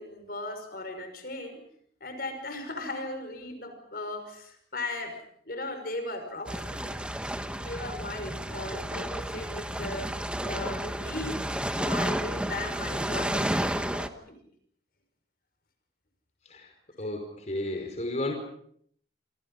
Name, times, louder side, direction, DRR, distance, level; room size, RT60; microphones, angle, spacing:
voice 1, 0.0-1.6 2.0-14.3, left 2 dB, 55° left, 8 dB, 5.8 m, -38 dB
sound 1, 6.5-14.1, right 1 dB, 5° right, 1.3 m, -31 dB
voice 2, 17.0-18.4, left 1 dB, 40° left, 3 dB, 5.3 m, -32 dB
28.0 x 27.5 x 5.6 m, 0.64 s
head